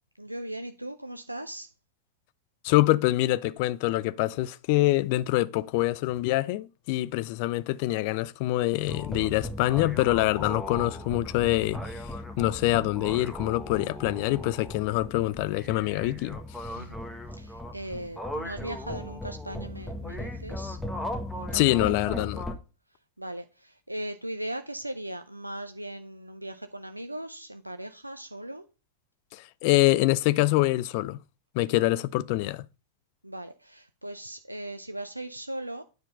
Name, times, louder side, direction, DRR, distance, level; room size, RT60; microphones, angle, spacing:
voice 1, 0.2-1.7 16.7-17.0 17.3-20.8 21.3-21.9 23.2-28.7 31.7-31.9 33.2-35.8, right 1 dB, 85° right, 0.5 m, -38 dB
voice 2, 2.6-11.8 12.4-16.4 21.5-22.5 29.3-31.2 31.5-32.7, left 18 dB, 45° left, 0.4 m, -25 dB
sound 1, 8.9-22.5, left 1 dB, ahead, 1.2 m, -37 dB
9.4 x 4.5 x 5.2 m
figure-of-eight pair, 90°, 0 cm